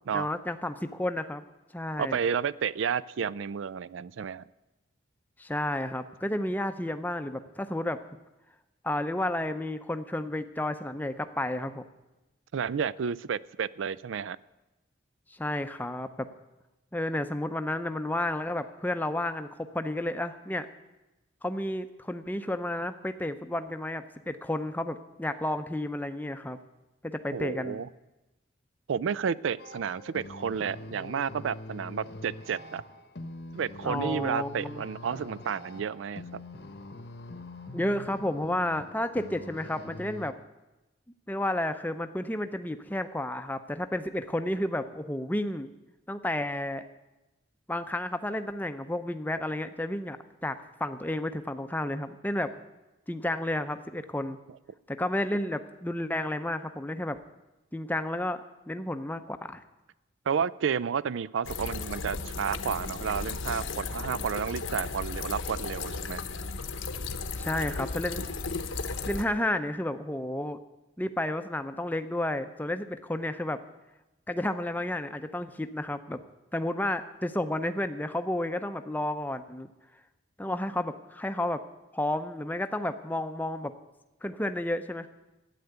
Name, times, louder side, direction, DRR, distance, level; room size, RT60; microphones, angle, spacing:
voice 1, 0.1-1.4 1.7-2.2 5.4-8.0 8.8-11.8 15.3-16.3 16.9-20.7 21.4-26.6 27.0-27.8 33.8-34.8 37.7-40.4 41.3-45.7 46.1-46.8 47.7-52.5 53.1-54.4 54.9-57.2 57.7-59.6 67.4-68.2 69.1-70.6 71.0-73.6 74.3-76.2 76.5-79.7 80.4-81.6 81.9-83.7 84.2-85.1, left 1 dB, 10° left, 9 dB, 0.6 m, -31 dB
voice 2, 2.0-4.4 12.5-14.4 27.3-27.9 28.9-32.8 33.5-36.4 60.3-66.2, right 7 dB, 75° right, 20 dB, 0.4 m, -31 dB
sound 1, 29.6-40.3, left 2 dB, 55° left, 0.9 m, -44 dB
sound 2, 61.4-69.2, left 4 dB, 80° left, 0.9 m, -35 dB
13.0 x 9.4 x 8.0 m, 1.0 s
head